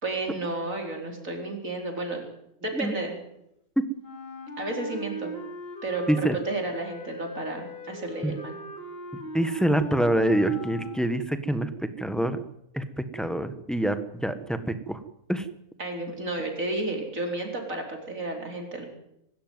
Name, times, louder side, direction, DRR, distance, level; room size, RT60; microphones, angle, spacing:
voice 1, 0.0-2.3 2.6-3.1 4.6-5.3 5.8-8.6 15.8-18.9, right 2 dB, 65° right, 2 dB, 4.8 m, -32 dB
Wind instrument woodwind instrument, 4.0-11.4, left 1 dB, 40° left, 3.5 m, -39 dB
voice 2, 9.3-11.7 12.0-12.4 12.7-15.0 15.3-15.4, right 1 dB, ahead, 9 dB, 1.5 m, -26 dB
23.5 x 13.0 x 9.4 m, 0.80 s
omnidirectional pair, 1.5 m